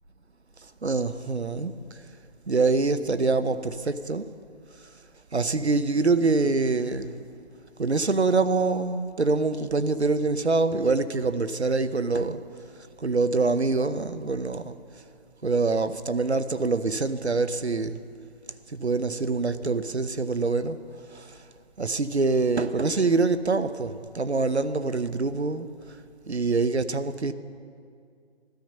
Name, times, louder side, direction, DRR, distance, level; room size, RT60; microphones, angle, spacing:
voice 1, 0.8-1.7 2.5-4.3 5.3-7.2 7.8-12.4 13.0-14.8 15.4-18.0 18.7-20.8 21.1-21.4 21.8-25.7 26.3-27.3, right 3 dB, 90° right, 0.8 m, -25 dB
13.0 x 13.0 x 5.5 m
figure-of-eight pair, 150°, 32 cm